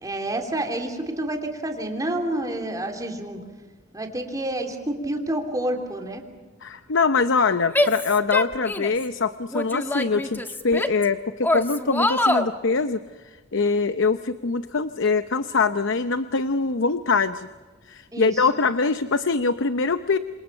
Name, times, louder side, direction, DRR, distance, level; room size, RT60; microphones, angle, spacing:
voice 1, 0.0-3.4 3.9-6.2 18.1-18.3, right 1 dB, 15° right, 3 dB, 3.3 m, -28 dB
voice 2, 6.6-13.0 13.2-17.5 17.9-20.2, left 4 dB, 60° left, 11 dB, 0.7 m, -23 dB
Female speech woman speaking / Yell, 7.7-9.0 9.5-11.1 11.4-12.5, left 1 dB, 10° left, 1.3 m, -24 dB
28.5 x 26.5 x 5.7 m, 1.3 s
head